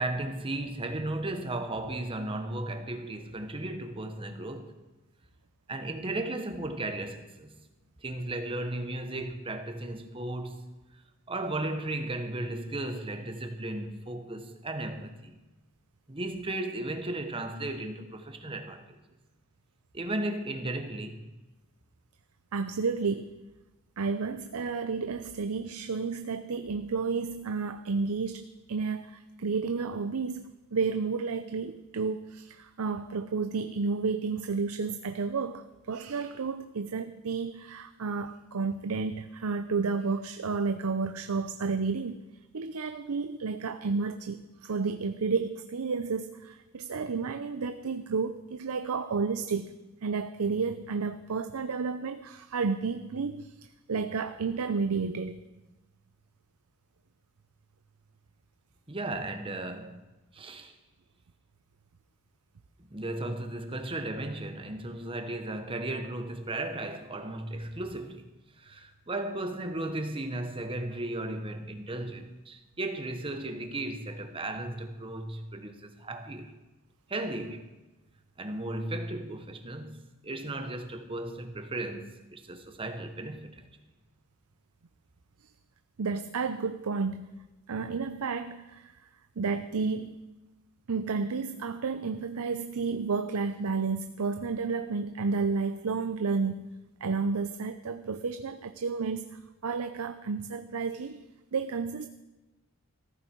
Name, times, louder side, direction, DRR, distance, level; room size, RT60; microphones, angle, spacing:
voice 1, 0.0-4.7 5.7-7.5 8.0-10.6 11.3-15.4 16.1-19.0 19.9-21.2 58.9-60.0 60.3-60.7 62.9-68.3 68.6-76.5 77.1-77.7 78.4-80.0 80.2-83.6, right 2 dB, 25° right, 1.2 m, -35 dB
voice 2, 22.5-23.3 24.0-42.2 42.5-49.7 50.0-55.4 86.0-87.3 87.7-88.9 89.4-90.2 90.9-96.7 97.0-101.2 101.5-102.1, right 4 dB, 85° right, 0.6 m, -31 dB
15.0 x 14.0 x 4.6 m
head